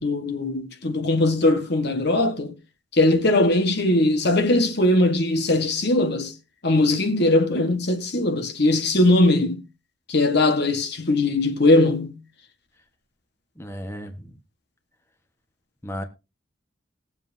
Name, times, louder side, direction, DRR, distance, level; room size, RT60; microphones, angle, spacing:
voice 1, 0.0-2.5 2.9-6.3 6.6-9.6 10.1-12.2, left 2 dB, 55° left, 1.5 m, -20 dB
voice 2, 13.6-14.3 15.8-16.0, equal, 15° left, 1.3 m, -34 dB
20.5 x 7.4 x 2.8 m
head